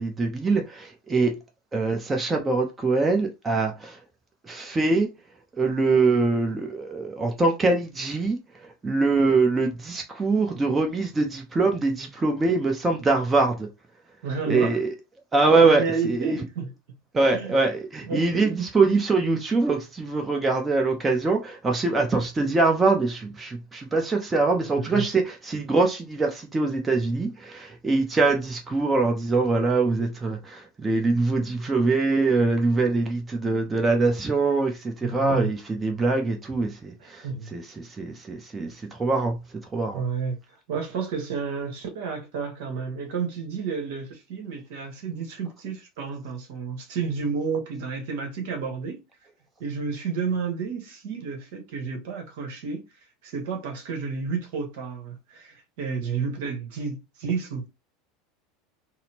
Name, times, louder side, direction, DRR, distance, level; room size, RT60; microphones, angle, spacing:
voice 1, 0.0-1.3 1.7-4.0 4.4-5.1 5.5-13.7 14.5-14.9 15.3-16.4 17.1-40.0, right 3 dB, 20° right, 0.7 m, -23 dB
voice 2, 14.2-14.8 15.5-16.7 17.3-17.5 18.0-18.6 24.8-25.0 35.0-35.5 37.2-37.5 39.9-40.4 40.7-49.0 49.6-52.8 53.2-57.7, right 5 dB, 60° right, 1.0 m, -31 dB
4.0 x 2.1 x 2.8 m
figure-of-eight pair, 75°, 0 cm